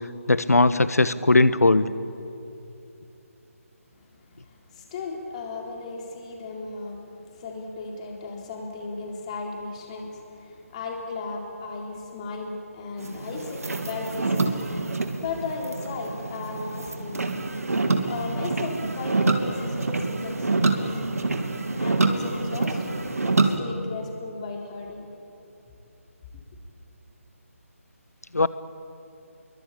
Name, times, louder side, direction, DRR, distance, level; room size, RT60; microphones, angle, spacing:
voice 1, 0.3-1.9 28.3-28.5, left 2 dB, 85° left, 14 dB, 1.3 m, -19 dB
voice 2, 3.9-14.5 15.2-17.2 18.1-21.1 21.8-25.1, left 3 dB, 25° left, 0 dB, 4.0 m, -36 dB
sound 1, 13.0-23.6, right 3 dB, 75° right, 2.6 m, -26 dB
26.0 x 23.5 x 8.8 m, 2.8 s
figure-of-eight pair, 160°, 8 cm